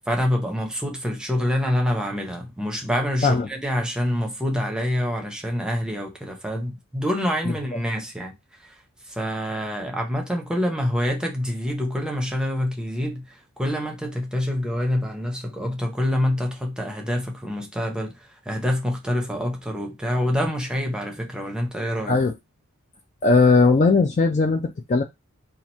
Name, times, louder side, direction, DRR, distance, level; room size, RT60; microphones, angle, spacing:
voice 1, 0.1-8.3 8.6-8.8 9.1-22.2, equal, 5° right, 0.7 m, -26 dB
voice 2, 23.2-25.0, left 3 dB, 30° left, 0.3 m, -18 dB
2.8 x 2.4 x 4.3 m
head